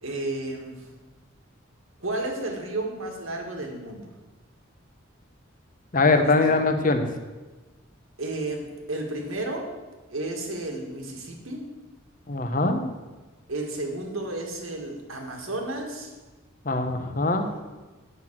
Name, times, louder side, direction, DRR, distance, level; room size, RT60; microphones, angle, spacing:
voice 1, 0.0-0.8 2.0-4.1 6.4-6.5 8.2-9.7 10.1-11.6 13.5-16.1 17.1-17.6, right 2 dB, 80° right, 2 dB, 2.0 m, -32 dB
voice 2, 5.9-7.1 12.3-12.8 16.6-17.5, left 3 dB, 40° left, 7 dB, 0.9 m, -22 dB
9.4 x 6.0 x 7.4 m, 1.2 s
head